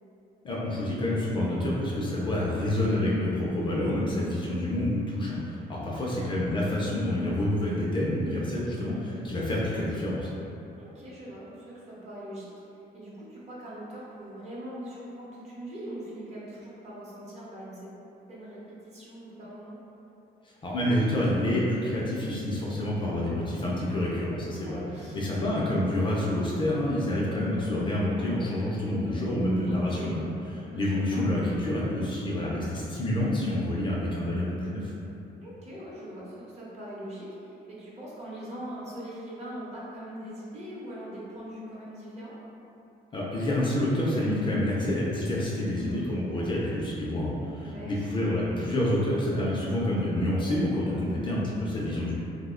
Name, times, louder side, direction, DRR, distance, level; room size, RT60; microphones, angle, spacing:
voice 1, 0.4-8.9 9.2-10.3 20.6-24.8 25.1-30.2 30.6-34.9 43.1-52.1, left 1 dB, 30° left, -6 dB, 0.4 m, -28 dB
voice 2, 3.8-4.2 6.0-6.2 8.6-8.9 10.8-12.5 12.9-17.9 18.3-19.8 24.4-25.6 29.6-30.1 30.7-31.2 35.4-42.4 45.7-46.1 47.6-48.1 51.1-51.5, right 1 dB, 40° right, -7 dB, 0.8 m, -41 dB
2.7 x 2.1 x 3.6 m, 2.8 s
cardioid pair, 160°, 17 cm